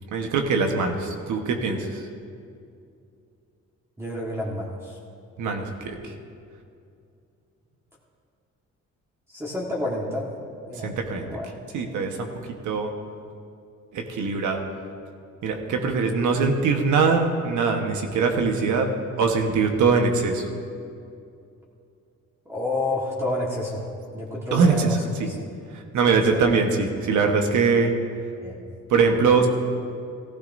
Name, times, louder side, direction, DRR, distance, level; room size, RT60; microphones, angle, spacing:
voice 1, 0.1-2.0 5.4-6.0 10.8-11.3 11.7-12.3 12.6-12.9 13.9-14.6 15.4-18.9 19.2-20.5 24.5-24.9 25.2-25.3 25.9-27.9 28.9-29.5, right 4 dB, 90° right, 3 dB, 1.3 m, -22 dB
voice 2, 4.0-5.0 9.3-10.3 10.7-11.5 22.4-23.8 24.1-25.4 26.0-26.5 28.4-28.5, left 1 dB, 10° right, -4 dB, 1.5 m, -30 dB
15.5 x 15.5 x 2.7 m, 2.5 s
cardioid pair, 130°, 30 cm